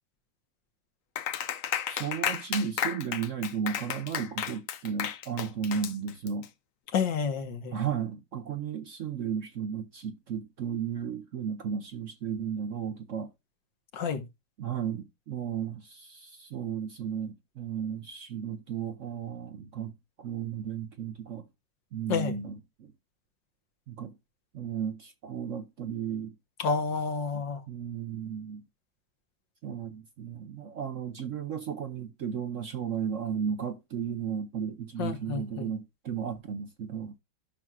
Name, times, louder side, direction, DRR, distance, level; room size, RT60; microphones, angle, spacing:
Clapping, 1.2-6.5, left 9 dB, 60° left, 0.9 m, -33 dB
voice 1, 1.9-6.5 7.7-13.3 14.6-21.5 21.9-22.9 23.9-24.1 24.5-26.3 27.7-28.6 29.6-37.2, right 7 dB, 55° right, 0.9 m, -34 dB
voice 2, 6.9-7.8 13.9-14.2 22.1-22.4 26.6-27.6 35.0-35.7, left 5 dB, 80° left, 1.9 m, -29 dB
14.0 x 6.1 x 2.3 m
omnidirectional pair, 2.0 m